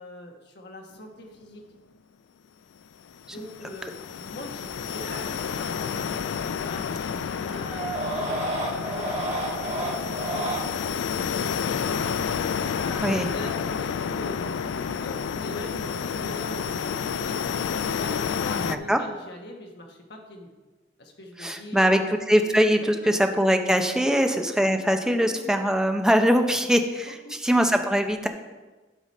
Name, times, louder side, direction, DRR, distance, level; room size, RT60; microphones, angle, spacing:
voice 1, 0.0-1.6 3.3-6.2 6.6-12.4 12.8-14.5 15.0-17.6 18.0-20.5 21.0-21.9 22.3-22.4 22.8-22.9 24.0-24.3 25.0-25.6 27.1-27.5, left 1 dB, 65° left, 1 dB, 1.3 m, -42 dB
sound 1, 3.1-18.8, left 6 dB, 90° left, 0.4 m, -30 dB
sound 2, 5.0-5.2 7.3-10.6 12.5-12.9, right 2 dB, 35° right, 1.7 m, -31 dB
voice 2, 13.0-13.3 18.6-19.0 21.4-24.3 24.6-28.3, equal, 5° right, 5 dB, 0.6 m, -22 dB
12.0 x 4.9 x 4.2 m, 1.2 s
head